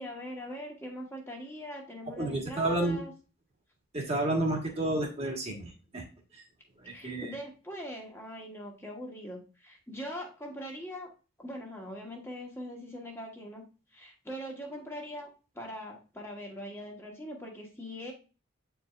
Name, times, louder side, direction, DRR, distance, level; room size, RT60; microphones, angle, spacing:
voice 1, 0.0-3.1 6.8-11.1 11.4-13.6 13.9-15.3 15.5-18.1, equal, 10° left, -1 dB, 1.2 m, -41 dB
voice 2, 2.2-3.0 3.9-6.0 6.3-6.4 6.8-7.3, right 2 dB, 30° right, 2 dB, 1.3 m, -30 dB
8.4 x 4.7 x 2.4 m, 0.34 s
head